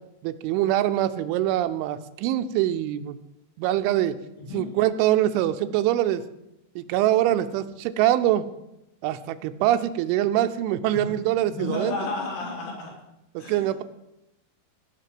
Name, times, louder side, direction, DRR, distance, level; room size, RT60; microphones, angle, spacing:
voice 1, 0.2-3.2 3.6-4.2 4.5-6.2 6.8-8.5 9.0-12.0 13.4-13.8, right 13 dB, 85° right, 10 dB, 3.1 m, -24 dB
voice 2, 10.9-12.9 13.4-13.8, left 2 dB, 80° left, -3 dB, 6.0 m, -33 dB
17.0 x 5.9 x 7.7 m, 0.89 s
omnidirectional pair, 5.5 m